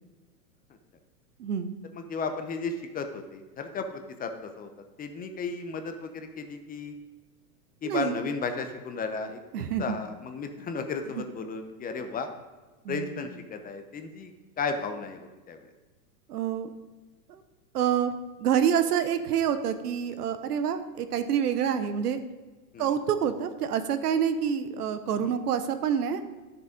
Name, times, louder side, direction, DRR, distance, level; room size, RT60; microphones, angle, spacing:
voice 1, 1.4-1.7 7.8-8.1 9.5-9.8 12.8-13.2 16.3-16.7 17.3-17.4 17.7-22.2 22.8-26.2, right 8 dB, 75° right, 10 dB, 1.0 m, -27 dB
voice 2, 1.9-4.7 5.0-7.0 7.8-9.4 9.8-12.3 12.9-15.7 22.7-23.0 25.2-25.3, left 4 dB, 20° left, 7 dB, 0.8 m, -34 dB
10.5 x 6.7 x 5.1 m, 1.2 s
hypercardioid pair, 115°, 46 cm